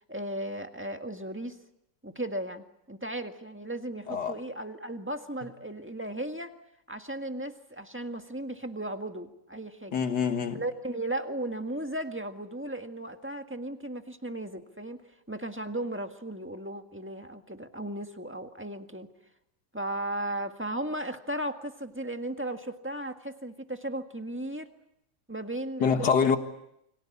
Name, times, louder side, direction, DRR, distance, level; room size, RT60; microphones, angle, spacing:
voice 1, 0.1-1.6 2.0-6.5 6.9-10.0 10.5-15.0 15.3-19.1 19.7-24.7 25.3-26.1, right 1 dB, 5° right, 1.6 m, -36 dB
voice 2, 9.9-10.6 25.8-26.4, left 6 dB, 85° left, 2.2 m, -25 dB
29.5 x 23.5 x 8.6 m
omnidirectional pair, 1.8 m